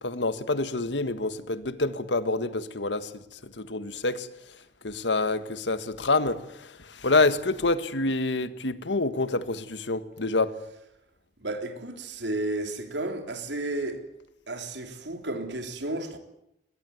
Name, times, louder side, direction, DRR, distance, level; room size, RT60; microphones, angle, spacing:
voice 1, 0.0-3.1 3.6-4.3 4.8-6.4 7.0-10.5, left 3 dB, 90° left, 1.7 m, -27 dB
voice 2, 11.4-14.1 14.5-16.2, right 2 dB, 75° right, 3.2 m, -32 dB
22.5 x 20.0 x 9.3 m
head